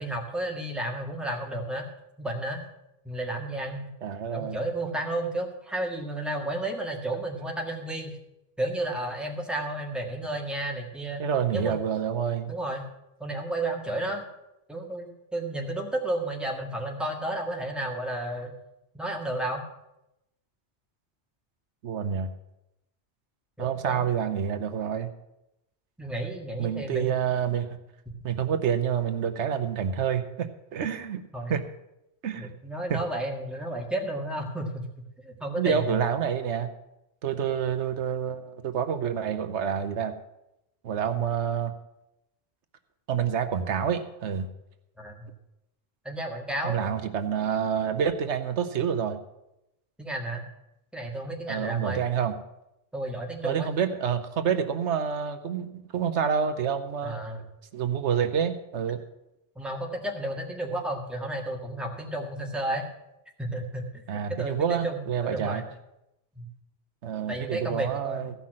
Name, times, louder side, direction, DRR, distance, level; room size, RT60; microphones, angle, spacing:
voice 1, 0.0-1.9 2.2-2.6 3.0-3.9 4.3-8.2 8.6-11.2 11.5-11.7 12.5-12.8 13.2-14.3 14.7-18.5 18.9-19.6 23.6-24.0 26.0-27.1 31.3-31.6 32.3-34.9 35.2-36.1 45.0-45.3 46.0-46.9 50.0-50.4 50.9-52.0 52.9-53.7 57.0-57.4 59.5-62.9 63.4-65.6 66.3-66.5 67.3-68.3, right 1 dB, ahead, 0 dB, 1.6 m, -32 dB
voice 2, 4.0-4.6 11.2-12.5 21.8-22.3 23.6-25.1 26.6-27.7 28.2-31.2 31.5-31.6 32.2-32.5 32.9-33.0 35.6-36.7 37.2-40.1 40.8-41.7 43.1-44.5 46.6-49.2 51.5-52.3 53.4-57.1 57.7-59.0 64.1-65.6 67.0-68.3, right 8 dB, 85° right, 8 dB, 1.1 m, -28 dB
15.0 x 5.8 x 7.5 m, 0.88 s
omnidirectional pair, 1.1 m